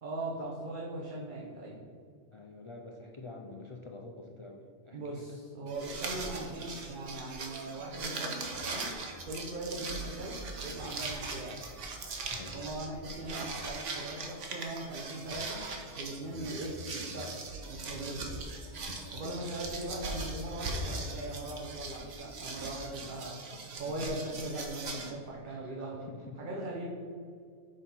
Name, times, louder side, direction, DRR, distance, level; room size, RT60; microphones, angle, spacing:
voice 1, 0.0-1.8 4.9-8.9 9.2-11.6 12.5-15.7 16.0-17.4 17.7-18.3 19.1-23.4 23.8-26.1 26.4-26.9, right 1 dB, 45° right, -3 dB, 1.0 m, -39 dB
voice 2, 2.3-5.3 6.2-6.3 12.3-12.6 19.2-19.5 25.4-26.4, left 2 dB, 50° left, 1 dB, 0.3 m, -47 dB
sound 1, 5.7-25.1, right 3 dB, 85° right, 1.3 m, -40 dB
6.9 x 4.2 x 5.3 m, 2.2 s
omnidirectional pair, 1.2 m